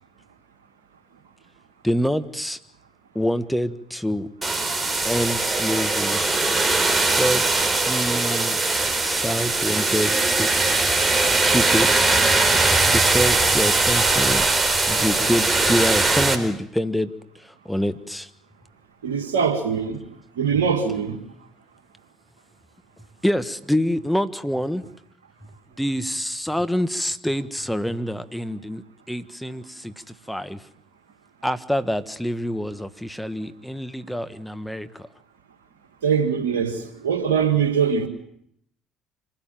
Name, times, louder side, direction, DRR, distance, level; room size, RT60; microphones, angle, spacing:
voice 1, 1.8-2.6 3.1-4.3 5.0-6.2 7.2-8.6 8.9-10.5 11.4-12.2 12.9-14.5 14.9-17.1 17.4-18.3 23.2-24.8 25.8-30.6 31.4-35.1, equal, 5° left, 1.5 m, -26 dB
sound 1, 4.4-16.3, right 3 dB, 20° right, 4.1 m, -20 dB
voice 2, 19.0-20.0 20.4-21.2 36.0-38.1, right 6 dB, 90° right, 1.8 m, -22 dB
26.0 x 16.5 x 9.2 m
hypercardioid pair, 65°, 0 cm